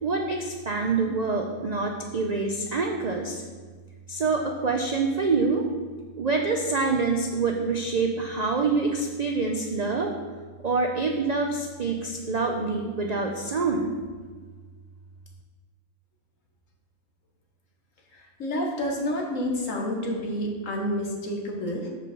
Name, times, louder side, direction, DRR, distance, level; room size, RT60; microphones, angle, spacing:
voice 1, 0.0-3.4 4.1-5.6 6.2-10.1 10.6-14.0, right 4 dB, 85° right, 2 dB, 0.3 m, -26 dB
voice 2, 18.1-21.9, equal, 60° left, 0 dB, 1.6 m, -29 dB
5.6 x 5.1 x 6.6 m, 1.5 s
omnidirectional pair, 1.6 m